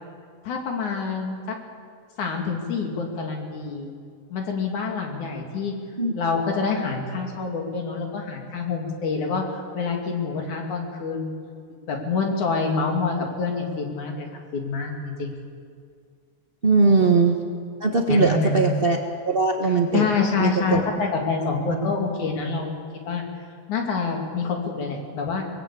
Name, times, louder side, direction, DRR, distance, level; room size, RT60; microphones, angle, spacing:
voice 1, 0.4-1.6 2.2-3.9 4.3-5.8 6.2-11.4 11.9-14.3 14.5-15.3 16.9-17.0 18.1-18.7 19.9-23.2 23.7-25.4, left 4 dB, 80° left, 1 dB, 4.1 m, -27 dB
voice 2, 16.6-17.4 17.8-19.0 19.2-20.1 20.4-20.8, right 4 dB, 75° right, 2 dB, 0.5 m, -20 dB
23.0 x 19.5 x 8.5 m, 2.2 s
omnidirectional pair, 3.4 m